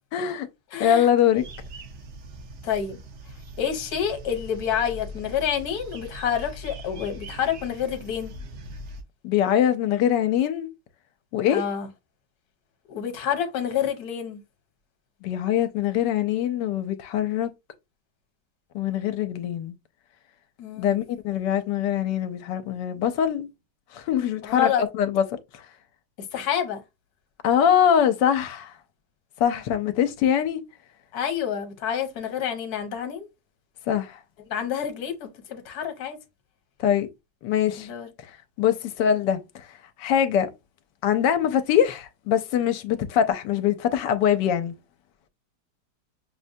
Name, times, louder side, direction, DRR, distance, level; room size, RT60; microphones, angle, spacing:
voice 1, 0.1-0.5 0.8-1.4 9.2-10.7 11.3-11.6 15.2-17.5 18.7-19.8 20.8-23.5 23.9-25.2 27.4-28.7 29.4-30.6 33.9-34.2 36.8-37.1 37.4-37.9 38.6-39.6 40.0-40.5 41.0-44.7, left 9 dB, 85° left, 1.2 m, -23 dB
voice 2, 0.7-1.1 2.6-3.0 3.6-8.3 11.5-11.9 12.9-14.4 20.6-21.0 24.4-24.8 26.3-26.8 31.1-33.3 34.5-36.2 37.8-38.1, left 8 dB, 65° left, 1.3 m, -28 dB
sound 1, 1.4-9.0, equal, 60° right, 0.7 m, -41 dB
6.2 x 2.1 x 2.6 m
omnidirectional pair, 1.9 m